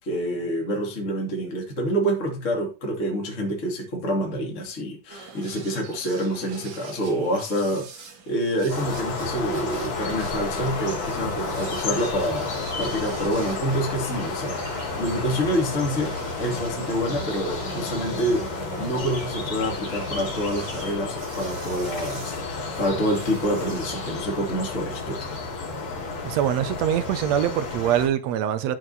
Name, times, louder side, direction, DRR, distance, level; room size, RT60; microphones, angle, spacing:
voice 1, 0.0-25.3, equal, 25° left, 2.6 m, -27 dB
sound 1, 5.1-24.2, right 4 dB, 90° right, 3.6 m, -42 dB
sound 2, 8.7-28.1, left 3 dB, 60° left, 4.2 m, -31 dB
voice 2, 26.2-28.8, right 10 dB, 70° right, 1.8 m, -23 dB
14.0 x 4.7 x 4.1 m
omnidirectional pair, 3.7 m